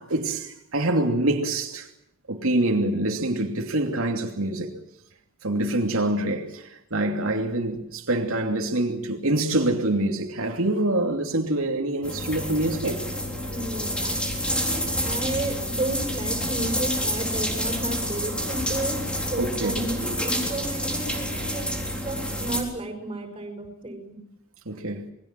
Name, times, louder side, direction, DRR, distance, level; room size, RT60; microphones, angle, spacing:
voice 1, 0.0-1.9 2.3-4.8 5.4-13.1 19.4-19.8 24.6-25.1, right 1 dB, 80° right, 2.8 m, -25 dB
voice 2, 7.4-7.9 13.5-19.0 19.3-24.1, right 1 dB, 25° right, 6.2 m, -33 dB
sound 1, 12.0-22.6, equal, 5° left, 4.0 m, -28 dB
28.0 x 22.0 x 7.6 m
head